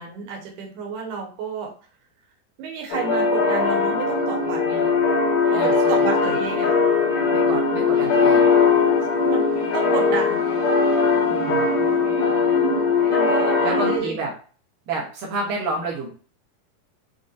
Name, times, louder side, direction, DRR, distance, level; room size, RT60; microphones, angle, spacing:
voice 1, 0.0-1.7 2.6-4.9 5.5-6.8 9.2-10.4 10.9-11.0 11.9-14.2, right 6 dB, 90° right, 0 dB, 2.9 m, -31 dB
sound 1, 2.9-14.0, left 4 dB, 60° left, 2.4 m, -20 dB
voice 2, 5.5-6.0 7.3-8.5 11.3-11.7 13.6-14.3 14.9-16.1, right 3 dB, 70° right, -2 dB, 2.4 m, -29 dB
7.4 x 2.8 x 2.6 m, 0.40 s
omnidirectional pair, 4.4 m